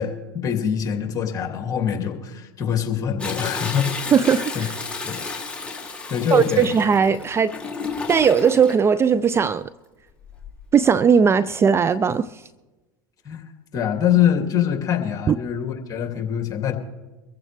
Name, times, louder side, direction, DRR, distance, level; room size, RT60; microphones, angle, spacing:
voice 1, 0.0-3.9 4.5-4.6 5.0-5.2 6.1-6.7 13.2-13.4 13.7-16.7, left 9 dB, 35° left, 2.6 m, -24 dB
Toilet flush, 3.2-8.8 10.2-10.7 11.2-11.3, left 4 dB, 10° left, 2.4 m, -32 dB
voice 2, 4.1-4.7 6.3-7.5 8.1-9.7 10.7-12.3 15.3-15.4, right 6 dB, 25° right, 0.4 m, -18 dB
23.0 x 14.5 x 3.4 m
hypercardioid pair, 85°, 11 cm